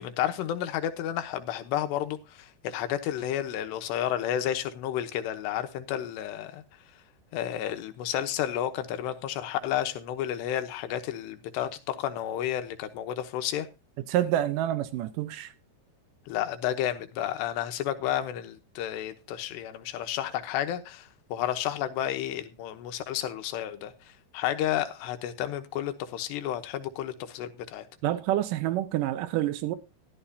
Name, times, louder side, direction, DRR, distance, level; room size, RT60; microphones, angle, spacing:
voice 1, 0.0-6.6 7.3-13.7 16.3-23.9 24.3-27.9, left 11 dB, 90° left, 3.2 m, -31 dB
voice 2, 14.1-15.5 28.0-29.7, right 13 dB, 85° right, 1.9 m, -27 dB
13.5 x 12.0 x 2.8 m
omnidirectional pair, 4.8 m